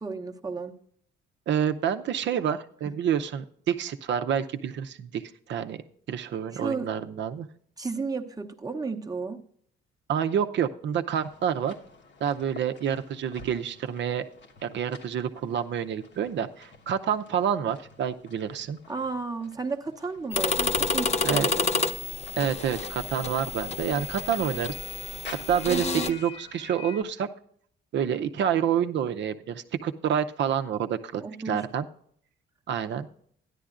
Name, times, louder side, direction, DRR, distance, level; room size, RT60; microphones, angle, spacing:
voice 1, 0.0-0.8 2.9-3.0 6.5-6.9 7.8-9.4 18.9-21.7 25.7-26.1 31.2-31.6, right 4 dB, 20° right, 4 dB, 0.8 m, -33 dB
voice 2, 1.5-5.2 5.5-5.8 6.1-7.5 10.1-11.7 12.2-14.2 14.6-18.8 21.2-21.5 22.4-24.7 25.5-27.3 27.9-31.9 32.7-33.1, right 8 dB, 65° right, 8 dB, 0.7 m, -28 dB
sound 1, 11.1-27.0, left 5 dB, 65° left, 1.3 m, -49 dB
sound 2, 20.3-26.1, left 4 dB, 35° left, 0.6 m, -29 dB
13.0 x 11.0 x 2.5 m, 0.63 s
cardioid pair, 90°, 20 cm